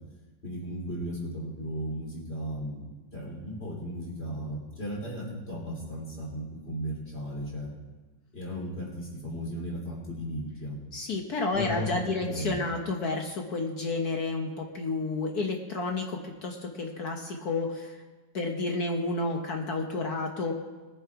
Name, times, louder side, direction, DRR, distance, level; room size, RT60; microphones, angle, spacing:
voice 1, 0.4-2.9 3.1-7.7 8.3-10.8 11.5-12.6, equal, 35° left, -3 dB, 3.5 m, -35 dB
voice 2, 10.9-18.0 18.3-20.5, left 3 dB, 60° left, 2 dB, 1.5 m, -31 dB
20.5 x 7.2 x 4.7 m, 1.3 s
omnidirectional pair, 1.9 m